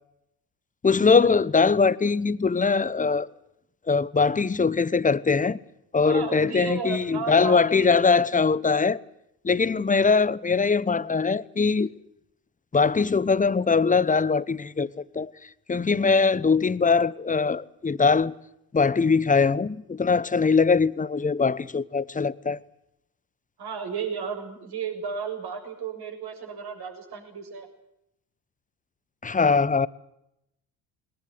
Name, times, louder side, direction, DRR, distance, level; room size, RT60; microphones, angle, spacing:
voice 1, 0.8-3.3 3.9-5.6 5.9-9.0 9.4-11.9 12.7-15.3 15.7-18.3 18.7-22.6 29.2-29.9, left 4 dB, 15° left, 0.9 m, -22 dB
voice 2, 6.0-8.0 23.6-27.7, right 6 dB, 50° right, 6.9 m, -33 dB
20.5 x 19.5 x 9.4 m
hypercardioid pair, 65°, 49 cm